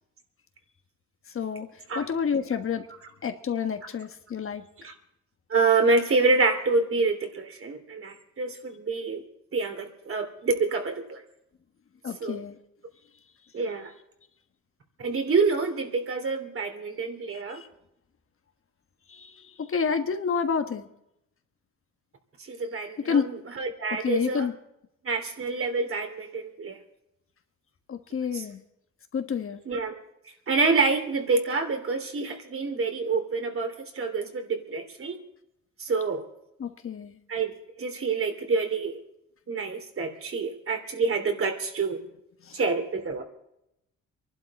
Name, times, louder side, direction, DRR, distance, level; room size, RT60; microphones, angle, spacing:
voice 1, 1.3-1.7 1.9-2.9 3.2-4.6 12.0-12.6 17.3-17.7 19.1-20.9 23.0-23.3 24.0-24.5 27.9-28.6 29.1-29.6 36.6-37.2 42.5-42.6, left 6 dB, 45° left, 7 dB, 1.4 m, -29 dB
voice 2, 5.5-9.2 9.5-11.2 12.2-12.4 13.5-13.9 15.0-17.6 22.4-24.5 25.0-26.8 28.3-28.4 29.6-30.0 30.5-35.2 35.8-36.2 37.3-39.0 39.5-42.0 42.5-43.2, right 4 dB, 45° right, 5 dB, 3.1 m, -27 dB
24.5 x 11.5 x 4.2 m, 0.81 s
cardioid pair, 90°, 30 cm